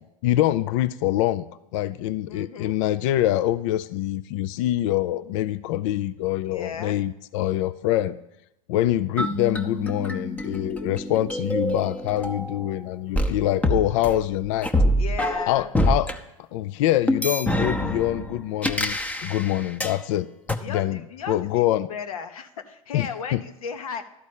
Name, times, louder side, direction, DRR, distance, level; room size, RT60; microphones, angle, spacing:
voice 1, 0.2-1.5 1.7-8.2 8.7-14.7 15.5-16.1 16.5-20.3 20.7-21.0 21.3-21.9 22.9-23.4, left 13 dB, 60° left, 15 dB, 0.4 m, -25 dB
voice 2, 2.3-2.8 6.4-7.0 13.1-13.7 15.0-15.7 20.6-24.0, left 7 dB, 75° left, 7 dB, 1.0 m, -36 dB
sound 1, 9.2-12.7 13.1-16.1 17.1-20.0 20.5-20.6, equal, 10° left, 0.7 m, -26 dB
12.5 x 4.2 x 8.2 m, 0.85 s
hypercardioid pair, 95°, 18 cm